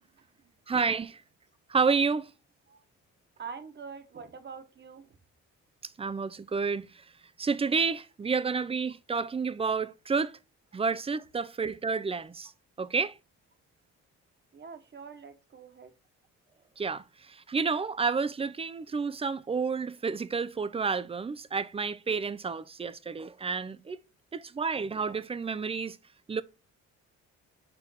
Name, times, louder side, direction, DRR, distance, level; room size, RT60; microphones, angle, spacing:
voice 1, 0.7-1.2 1.7-2.3 6.0-7.0 7.4-10.4 10.7-12.5 12.8-13.2 16.8-24.0 24.3-26.0 26.3-26.4, right 5 dB, 20° right, 0.4 m, -30 dB
voice 2, 3.4-5.2 14.5-15.9, right 6 dB, 35° right, 1.2 m, -44 dB
4.5 x 3.8 x 5.6 m
cardioid pair, 90°, 30 cm